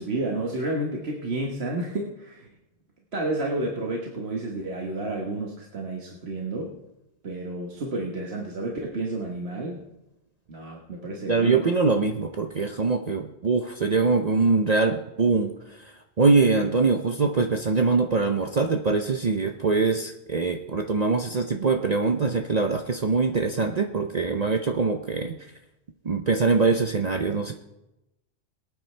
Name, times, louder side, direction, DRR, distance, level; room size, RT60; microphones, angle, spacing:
voice 1, 0.0-2.5 3.1-6.8 7.2-9.8 10.5-11.7, right 2 dB, 65° right, -1 dB, 1.6 m, -30 dB
voice 2, 11.3-15.5 16.2-25.4 26.1-27.5, right 4 dB, 40° right, 5 dB, 0.7 m, -23 dB
22.5 x 9.1 x 3.3 m, 0.93 s
omnidirectional pair, 1.2 m